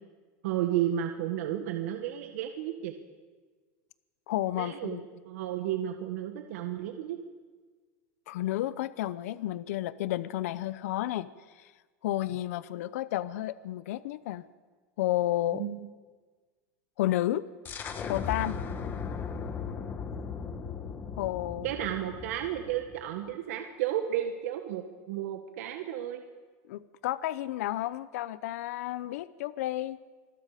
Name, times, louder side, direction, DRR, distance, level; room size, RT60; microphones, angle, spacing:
voice 1, 0.4-2.9 4.6-5.0 5.3-7.2 15.5-15.8 21.6-26.2, right 11 dB, 70° right, 4 dB, 1.7 m, -32 dB
voice 2, 4.3-5.0 8.3-11.3 11.6-11.7 12.0-14.4 15.0-15.6 17.0-17.4 18.1-18.6 21.2-21.7 26.7-30.0, left 14 dB, 75° left, 15 dB, 0.7 m, -31 dB
sound 1, 17.7-23.2, left 6 dB, 25° left, 1.5 m, -37 dB
26.0 x 20.5 x 5.1 m, 1.4 s
supercardioid pair, 155°, 8 cm